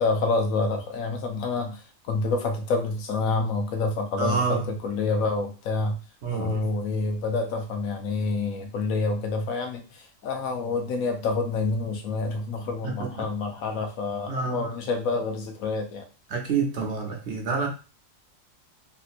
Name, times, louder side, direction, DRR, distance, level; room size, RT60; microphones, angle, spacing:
voice 1, 0.0-6.0 6.3-16.1, left 3 dB, 80° left, 4 dB, 1.1 m, -28 dB
voice 2, 4.2-4.7 6.2-6.6 12.8-13.1 14.3-14.7 16.3-17.7, right 5 dB, 60° right, 2 dB, 0.9 m, -27 dB
3.2 x 2.8 x 2.5 m, 0.34 s
omnidirectional pair, 1.4 m